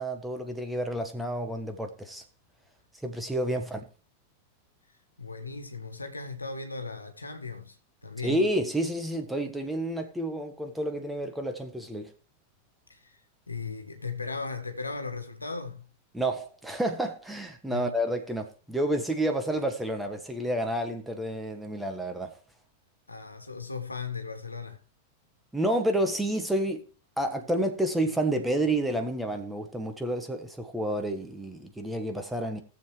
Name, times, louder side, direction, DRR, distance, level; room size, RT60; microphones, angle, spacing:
voice 1, 0.0-2.2 3.0-3.8 8.2-12.1 16.1-22.4 25.5-26.9 27.2-32.6, right 1 dB, 5° right, 1.5 m, -30 dB
voice 2, 4.9-8.4 12.9-15.9 17.7-17.9 23.1-24.8, left 4 dB, 80° left, 1.6 m, -37 dB
18.5 x 7.3 x 3.2 m
figure-of-eight pair, 90°, 0 cm